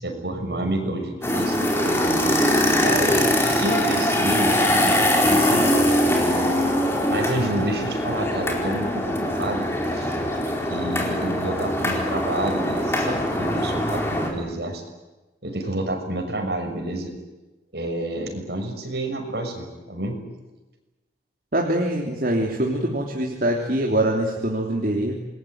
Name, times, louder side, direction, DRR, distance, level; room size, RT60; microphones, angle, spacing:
voice 1, 0.0-2.0 2.8-3.2 3.5-5.8 6.3-6.5 7.1-9.7 9.9-10.1 10.7-14.8 15.4-17.1 17.7-20.2, right 1 dB, 70° right, 3 dB, 6.4 m, -29 dB
sound 1, 1.2-14.3, left 1 dB, 15° left, 4.3 m, -22 dB
voice 2, 21.5-25.1, right 1 dB, 55° right, -1 dB, 3.2 m, -24 dB
28.0 x 21.0 x 9.4 m, 1.1 s
head